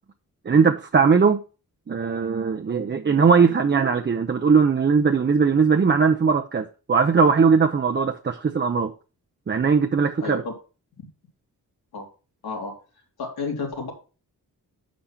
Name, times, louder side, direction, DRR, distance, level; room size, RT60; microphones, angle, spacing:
voice 1, 0.4-1.4 1.9-8.9 9.5-10.4, right 5 dB, 30° right, 0.6 m, -19 dB
voice 2, 10.2-10.5 11.9-12.1 12.4-12.7 13.2-13.9, left 4 dB, 85° left, 2.8 m, -30 dB
5.9 x 5.2 x 5.6 m
cardioid pair, 95°, 36 cm